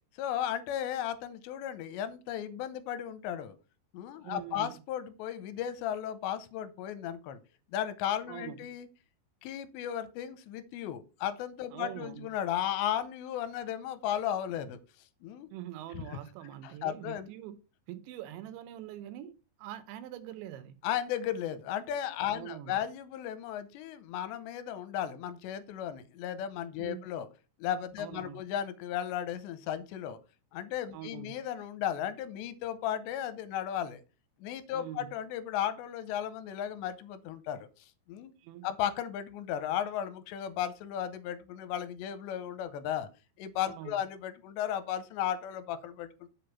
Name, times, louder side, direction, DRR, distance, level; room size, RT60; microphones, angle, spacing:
voice 1, 0.2-3.6 3.9-7.4 7.7-8.9 9.4-14.8 15.2-15.5 16.0-16.1 16.6-17.3 20.8-27.3 27.6-30.2 30.5-34.0 34.4-38.3 38.6-43.1 43.4-46.3, left 10 dB, 85° left, 3.0 m, -35 dB
voice 2, 4.2-4.8 8.3-8.8 11.7-12.3 15.5-17.6 17.9-20.8 22.3-22.8 26.8-27.1 28.0-28.4 30.9-31.4 34.7-35.1 38.4-38.7 43.7-44.0, right 12 dB, 90° right, 3.2 m, -44 dB
7.6 x 5.1 x 5.7 m
omnidirectional pair, 5.1 m